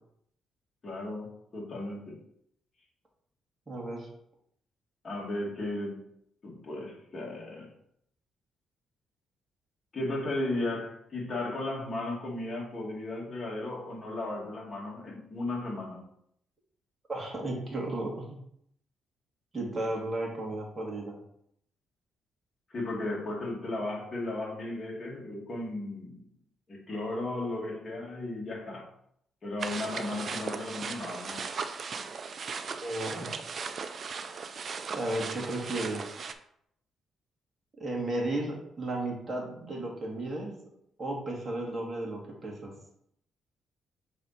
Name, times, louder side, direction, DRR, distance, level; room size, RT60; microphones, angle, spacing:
voice 1, 0.8-2.2 5.0-6.0 6.4-7.7 9.9-16.1 22.7-26.3 26.7-28.9 29.4-31.5, left 2 dB, 35° left, -3 dB, 2.2 m, -35 dB
voice 2, 3.7-4.1 17.1-18.4 19.5-21.2 32.8-33.3 34.9-36.1 37.8-40.5 41.0-42.7, right 1 dB, 25° right, -2 dB, 2.3 m, -34 dB
sound 1, 29.6-36.3, right 5 dB, 50° right, 0.6 m, -37 dB
6.4 x 4.1 x 4.2 m, 0.72 s
cardioid pair, 90°, 0 cm